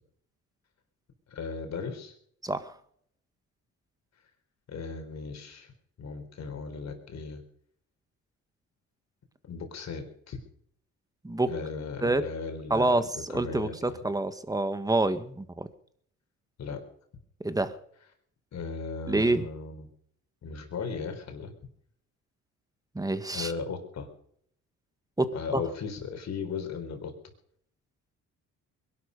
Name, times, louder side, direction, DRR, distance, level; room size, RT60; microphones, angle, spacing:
voice 1, 1.3-2.1 4.7-5.7 6.0-7.4 9.5-10.4 11.5-13.0 13.3-14.0 16.6-16.8 18.5-19.9 20.4-21.5 23.3-24.1 25.3-27.1, left 5 dB, 60° left, 5 dB, 4.4 m, -36 dB
voice 2, 2.4-2.7 11.2-11.5 12.0-12.3 12.7-15.7 17.4-17.7 19.1-19.5 22.9-23.5 25.2-25.6, right 2 dB, 10° right, 11 dB, 1.6 m, -27 dB
22.0 x 12.0 x 5.4 m, 0.66 s
cardioid pair, 90°, 30 cm